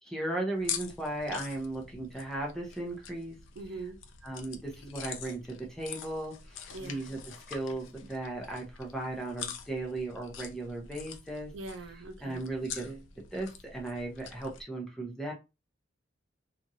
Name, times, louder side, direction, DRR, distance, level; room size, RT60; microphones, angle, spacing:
voice 1, 0.0-3.4 4.2-7.2 7.5-11.5 12.2-15.3, right 2 dB, ahead, 0.6 m, -36 dB
sound 1, 0.5-14.6, left 7 dB, 85° left, 0.5 m, -45 dB
voice 2, 3.6-4.0 6.7-7.0 11.5-12.4, right 3 dB, 90° right, 0.5 m, -42 dB
2.9 x 2.4 x 2.7 m
head